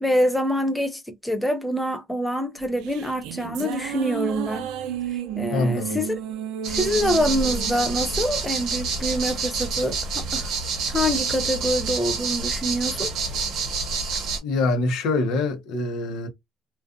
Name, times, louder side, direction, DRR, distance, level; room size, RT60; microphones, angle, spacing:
voice 1, 0.0-4.7 5.4-6.2 6.7-10.5 10.9-13.1 13.5-13.6, equal, 5° left, 0.4 m, -25 dB
sound 1, 2.6-9.1, right 10 dB, 85° right, 0.4 m, -33 dB
voice 2, 5.5-6.0 14.4-16.3, left 2 dB, 75° left, 0.8 m, -24 dB
sound 2, 6.6-14.4, right 4 dB, 60° right, 0.8 m, -27 dB
2.4 x 2.3 x 2.4 m
cardioid pair, 145°, 0 cm